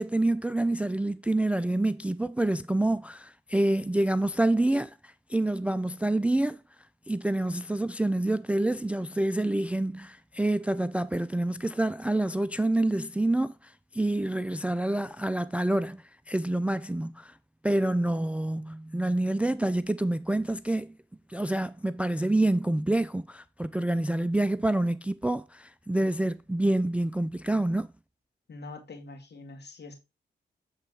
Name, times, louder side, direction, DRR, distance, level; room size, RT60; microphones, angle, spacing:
voice 1, 0.0-6.6 7.1-17.3 17.6-21.0 21.3-27.9, right 1 dB, 5° right, 0.3 m, -27 dB
voice 2, 28.5-29.9, left 3 dB, 60° left, 2.0 m, -44 dB
7.4 x 3.8 x 4.8 m
cardioid pair, 55°, 20 cm